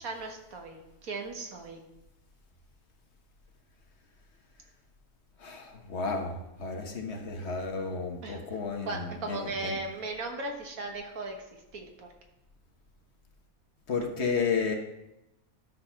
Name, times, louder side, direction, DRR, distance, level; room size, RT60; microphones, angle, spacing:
voice 1, 0.0-1.8 8.2-8.4 8.8-11.4 11.7-12.1, right 3 dB, 90° right, 3 dB, 1.8 m, -37 dB
voice 2, 5.4-6.3 6.6-9.8 13.9-14.7, left 5 dB, 55° left, 4 dB, 1.3 m, -32 dB
12.0 x 4.3 x 5.5 m, 0.90 s
omnidirectional pair, 1.5 m